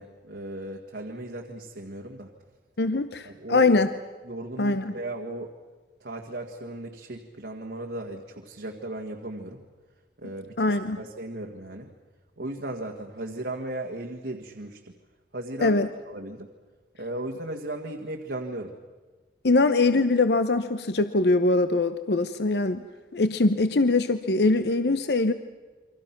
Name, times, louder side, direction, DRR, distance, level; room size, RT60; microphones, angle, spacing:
voice 1, 0.0-2.3 3.2-3.6 4.3-5.5 6.0-9.6 10.2-10.6 11.0-11.9 12.4-14.8 15.3-16.5 17.0-18.7, right 1 dB, 75° right, 1 dB, 1.9 m, -36 dB
voice 2, 2.8-3.9 4.6-4.9 10.6-11.0 15.6-15.9 19.4-22.8 23.1-25.3, left 3 dB, 70° left, 10 dB, 0.8 m, -22 dB
29.0 x 24.5 x 6.0 m, 1.4 s
head